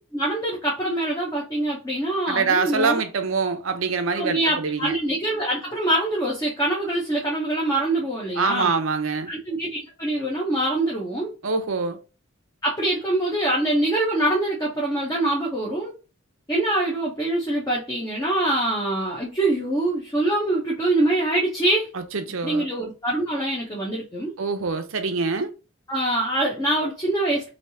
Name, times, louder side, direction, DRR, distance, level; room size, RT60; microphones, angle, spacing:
voice 1, 0.1-3.0 4.2-8.7 9.3-11.3 12.6-15.9 16.5-21.9 22.4-24.3 25.9-27.5, right 1 dB, 15° left, 0.8 m, -24 dB
voice 2, 2.3-5.0 8.4-9.3 11.4-12.0 22.1-22.7 24.4-25.5, right 4 dB, 75° right, 0.6 m, -24 dB
3.3 x 2.7 x 2.6 m
head